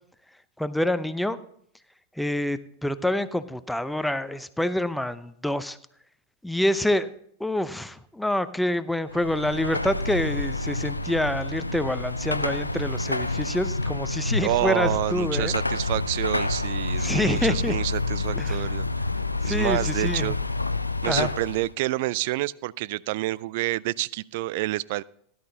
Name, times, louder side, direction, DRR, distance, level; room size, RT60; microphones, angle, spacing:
voice 1, 0.6-1.4 2.2-5.8 6.4-7.1 7.4-15.5 17.0-17.8 18.4-18.6 19.4-20.3 21.1-21.3, left 1 dB, 5° left, 14 dB, 0.6 m, -27 dB
Car passing by / Traffic noise roadway noise / Engine, 9.1-21.7, left 2 dB, 85° left, 0.5 m, -28 dB
voice 2, 14.4-18.9 19.4-20.4 21.0-25.0, right 18 dB, 50° right, 23 dB, 0.3 m, -28 dB
17.0 x 11.0 x 2.8 m, 0.68 s
figure-of-eight pair, 90°, 0 cm